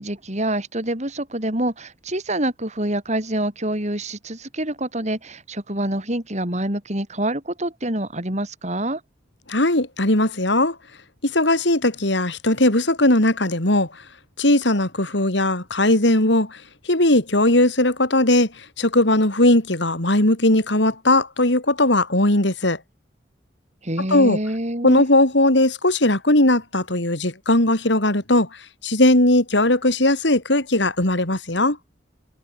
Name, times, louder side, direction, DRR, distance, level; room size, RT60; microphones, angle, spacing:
voice 1, 0.0-9.0 23.8-25.0, right 1 dB, 40° right, 5.8 m, -26 dB
voice 2, 9.5-10.8 11.2-13.9 14.4-16.6 16.9-22.8 24.1-24.4 24.8-28.5 28.8-31.8, left 1 dB, 70° left, 4.3 m, -18 dB
head